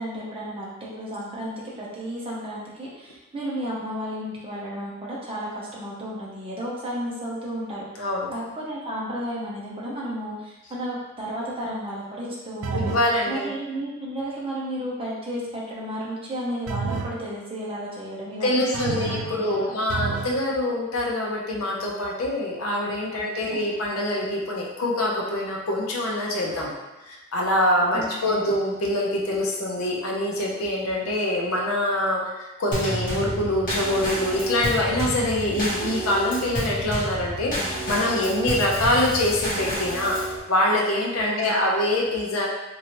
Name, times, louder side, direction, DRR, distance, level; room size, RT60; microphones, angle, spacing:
voice 1, 0.0-12.9 13.3-19.7 23.1-23.6 27.9-28.5 41.2-41.6, equal, 25° right, -5 dB, 0.7 m, -33 dB
voice 2, 8.0-8.3 12.7-13.5 18.4-26.7 27.1-32.2 32.6-40.2 40.5-42.5, left 1 dB, 75° left, -2 dB, 0.7 m, -24 dB
sound 1, 12.6-13.1 16.7-17.2 18.7-19.4 19.9-20.4, right 5 dB, 75° right, 0.3 m, -29 dB
Drum kit / Snare drum / Bass drum, 32.7-40.4, right 1 dB, 40° left, 1.1 m, -30 dB
3.1 x 2.6 x 2.9 m, 1.1 s
head